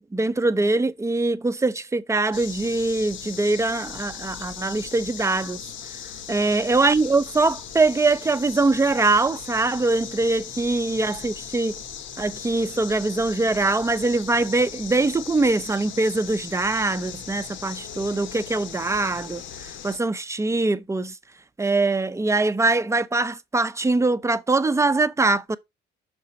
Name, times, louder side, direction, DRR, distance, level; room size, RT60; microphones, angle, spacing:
voice 1, 0.1-5.6 6.3-11.7 12.2-19.4 19.8-21.2 21.6-25.6, right 3 dB, 15° right, 0.6 m, -22 dB
sound 1, 2.3-20.0, left 8 dB, 75° left, 1.1 m, -38 dB
6.1 x 4.7 x 4.2 m
cardioid pair, 90°, 20 cm